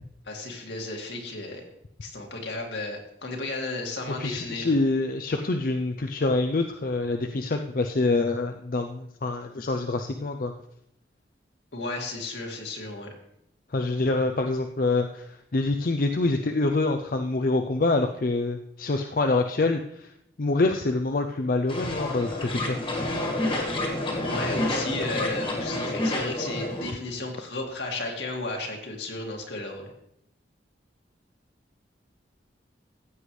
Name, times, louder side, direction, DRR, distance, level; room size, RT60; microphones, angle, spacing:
voice 1, 0.3-1.6 2.0-4.7 11.7-13.1 24.2-29.9, left 2 dB, 75° left, 1 dB, 2.1 m, -34 dB
voice 2, 4.2-10.5 13.7-20.1 20.4-22.8, left 2 dB, 50° left, 5 dB, 0.5 m, -26 dB
sound 1, 21.7-26.9, left 1 dB, 30° left, 1.7 m, -29 dB
15.0 x 8.1 x 3.2 m, 0.77 s
head